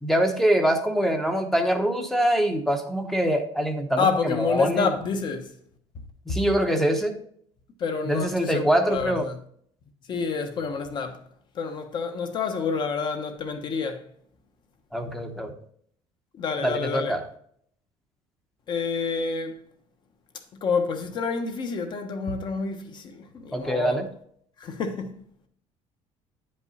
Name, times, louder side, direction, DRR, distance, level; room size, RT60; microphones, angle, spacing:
voice 1, 0.0-4.9 6.3-7.2 8.0-9.3 14.9-15.5 16.6-17.2 23.5-24.1, right 1 dB, ahead, 0.8 m, -24 dB
voice 2, 4.0-5.5 6.3-6.4 7.8-9.4 10.1-11.2 11.6-14.0 16.4-17.2 18.7-19.5 20.6-24.0 24.6-25.1, left 5 dB, 40° left, 1.0 m, -28 dB
9.9 x 5.3 x 4.1 m
cardioid pair, 170°, 12 cm